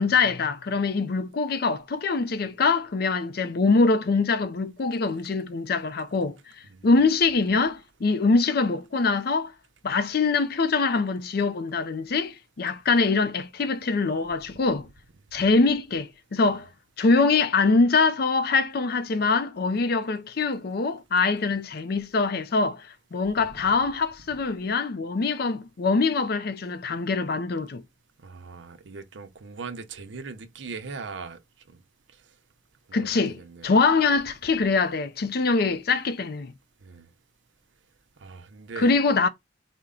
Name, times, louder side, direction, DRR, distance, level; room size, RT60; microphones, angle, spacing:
voice 1, 0.0-6.4 6.8-9.5 9.8-14.9 15.3-16.7 17.0-27.8 32.9-36.5 38.8-39.3, left 4 dB, 55° left, 0.5 m, -23 dB
voice 2, 28.2-31.4 31.7-31.8 32.9-33.7 36.8-37.1 38.2-38.9, right 4 dB, 85° right, 0.7 m, -40 dB
4.3 x 2.1 x 3.7 m
head